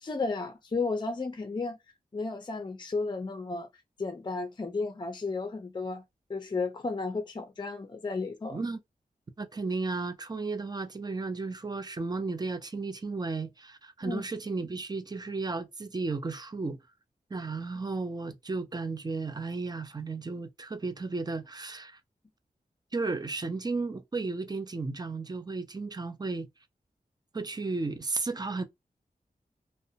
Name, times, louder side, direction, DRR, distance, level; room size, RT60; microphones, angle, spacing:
voice 1, 0.0-1.8 2.1-3.7 4.0-6.0 6.3-8.6 14.0-14.2, left 3 dB, 30° left, 0.5 m, -33 dB
voice 2, 9.4-16.8 17.3-22.0 22.9-26.5 27.3-28.6, right 3 dB, 25° right, 0.4 m, -34 dB
2.5 x 2.1 x 2.7 m
wide cardioid pair, 75°, 15 cm